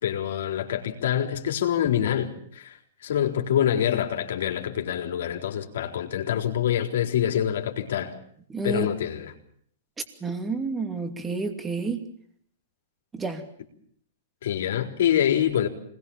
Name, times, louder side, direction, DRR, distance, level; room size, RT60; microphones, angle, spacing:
voice 1, 0.0-8.1 8.6-9.3 14.4-15.7, left 10 dB, 70° left, 4 dB, 4.0 m, -26 dB
voice 2, 8.5-8.9 10.2-12.0 13.1-13.4, right 4 dB, 10° right, 7 dB, 2.6 m, -29 dB
26.0 x 20.5 x 7.3 m, 0.64 s
hypercardioid pair, 155°, 0 cm